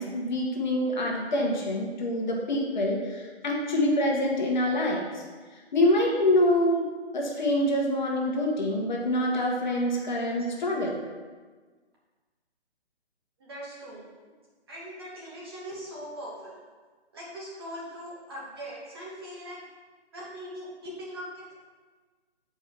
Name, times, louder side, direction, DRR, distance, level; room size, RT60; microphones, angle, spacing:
voice 1, 0.0-5.2 5.7-6.8 7.1-11.0, left 1 dB, 45° left, -1 dB, 1.2 m, -26 dB
voice 2, 9.7-10.0 13.4-14.0 14.7-16.6 17.1-19.6 20.1-21.7, equal, 20° right, -5 dB, 0.9 m, -41 dB
7.3 x 4.6 x 3.4 m, 1.4 s
hypercardioid pair, 160°, 33 cm